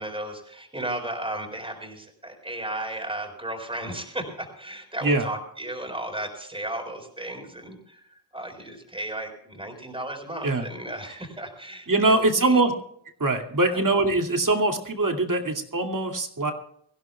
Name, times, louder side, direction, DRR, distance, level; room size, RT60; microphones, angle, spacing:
voice 1, 0.0-12.6 13.7-13.8, right 1 dB, 10° right, 3 dB, 4.4 m, -35 dB
voice 2, 11.9-12.7 13.2-16.5, right 2 dB, 45° right, 4 dB, 2.5 m, -22 dB
24.5 x 16.0 x 2.3 m, 0.67 s
wide cardioid pair, 110°, 45 cm